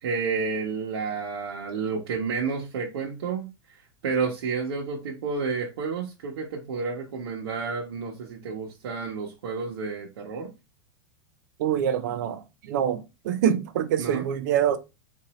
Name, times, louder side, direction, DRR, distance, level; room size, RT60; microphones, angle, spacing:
voice 1, 0.0-10.5 14.0-14.2, right 5 dB, 80° right, 1.0 m, -30 dB
voice 2, 11.6-14.8, right 9 dB, 50° right, 0.4 m, -25 dB
3.9 x 2.6 x 2.9 m
supercardioid pair, 175°, 13 cm